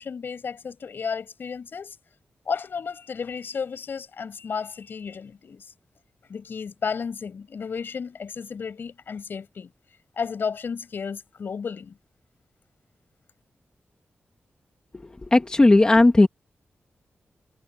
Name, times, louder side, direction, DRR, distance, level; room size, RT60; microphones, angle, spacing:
voice 1, 0.0-1.9 2.5-5.6 6.3-9.7 10.2-12.0, left 6 dB, 60° left, 7.0 m, -33 dB
voice 2, 15.3-16.3, left 2 dB, 20° left, 1.3 m, -15 dB
wide cardioid pair, 145°, 4 cm